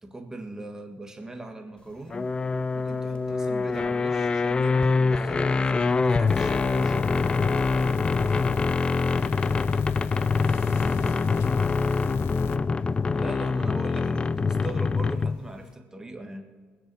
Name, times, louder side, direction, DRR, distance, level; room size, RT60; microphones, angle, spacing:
voice 1, 0.0-2.3 2.7-7.2 13.1-16.5, right 2 dB, 15° right, 5 dB, 1.6 m, -40 dB
sound 1, 2.1-15.5, left 4 dB, 25° left, 0.3 m, -24 dB
sound 2, 6.3-12.6, left 9 dB, 80° left, 0.6 m, -39 dB
voice 2, 8.4-8.5, left 3 dB, 65° left, 1 dB, 3.2 m, -49 dB
20.0 x 6.9 x 7.1 m, 1.5 s
cardioid pair, 120°, 4 cm